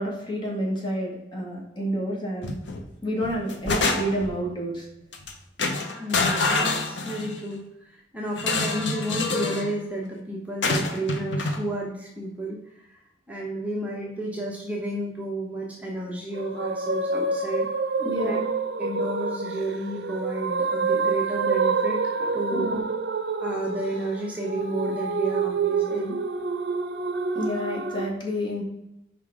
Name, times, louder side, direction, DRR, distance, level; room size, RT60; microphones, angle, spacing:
voice 1, 0.0-2.6 3.0-4.9 18.0-18.4 22.5-22.8 27.3-28.6, equal, 25° left, -2 dB, 1.9 m, -29 dB
sound 1, 2.4-2.8 3.2-4.3 5.1-5.3 5.6-7.4 8.4-9.7 10.6-11.6, left 3 dB, 85° left, 0.9 m, -26 dB
voice 2, 6.0-13.0 13.3-17.7 18.2-18.4 18.8-22.8 23.4-26.2, right 1 dB, 10° right, -3 dB, 1.0 m, -32 dB
sound 2, 16.3-28.1, right 4 dB, 65° right, 0.6 m, -27 dB
5.8 x 5.0 x 4.8 m, 0.89 s
head